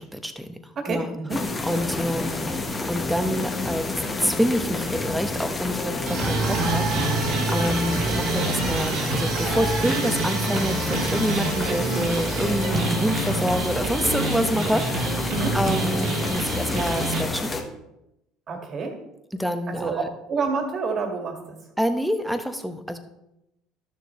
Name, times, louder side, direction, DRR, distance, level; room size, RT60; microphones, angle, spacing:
voice 1, 0.0-0.6 0.9-1.1 1.6-2.6 2.9-3.9 4.2-17.5 19.3-20.1 21.8-23.0, equal, ahead, 8 dB, 1.0 m, -27 dB
voice 2, 0.8-1.4 15.3-15.6 18.5-19.0 19.7-21.6, right 4 dB, 45° right, 4 dB, 2.0 m, -28 dB
sound 1, 1.3-17.6, left 3 dB, 25° left, 1.3 m, -29 dB
sound 2, 6.0-17.2, right 3 dB, 60° right, 1.5 m, -27 dB
12.5 x 6.6 x 3.1 m, 0.88 s
hypercardioid pair, 70°, 0 cm